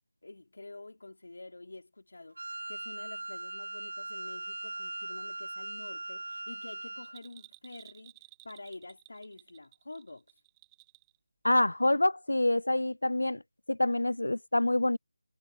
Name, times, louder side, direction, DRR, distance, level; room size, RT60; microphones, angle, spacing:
voice 1, 0.2-10.4, left 2 dB, 70° left, 4.1 m, -48 dB
Wind instrument woodwind instrument, 2.4-7.2, right 2 dB, 75° right, 0.6 m, -40 dB
Bell, 7.0-11.2 11.4-11.5, right 25 dB, 10° right, 2.2 m, -56 dB
voice 2, 11.4-13.4 13.7-15.0, left 1 dB, 90° left, 0.3 m, -26 dB
figure-of-eight pair, 165°, 0 cm